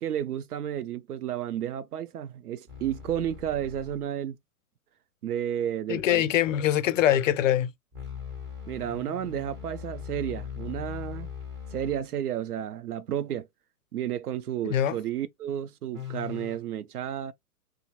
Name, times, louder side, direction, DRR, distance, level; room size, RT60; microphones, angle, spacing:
voice 1, 0.0-4.4 5.2-6.3 8.7-11.3 11.7-13.5 13.9-17.3, right 10 dB, 80° right, 0.5 m, -32 dB
sound 1, 2.7-4.1 7.9-12.1 15.9-16.6, left 8 dB, 15° right, 0.4 m, -40 dB
voice 2, 5.9-7.7 14.6-15.0, left 11 dB, 60° left, 0.5 m, -23 dB
2.7 x 2.1 x 2.9 m
figure-of-eight pair, 110°, 45 cm